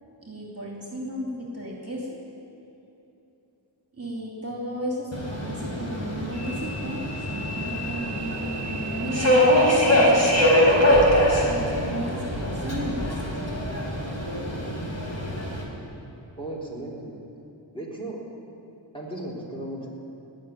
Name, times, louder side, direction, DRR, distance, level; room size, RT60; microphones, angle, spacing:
voice 1, 0.2-2.1 3.9-9.5 10.0-11.1 11.4-13.2, right 1 dB, 30° right, -2 dB, 2.7 m, -34 dB
Subway metro underground, 5.1-15.6, equal, 35° left, 4.0 m, -23 dB
voice 2, 16.4-17.2 17.7-18.2 18.9-19.9, right 1 dB, 10° left, -4 dB, 3.6 m, -35 dB
18.5 x 6.6 x 9.3 m, 3.0 s
cardioid pair, 60°, 46 cm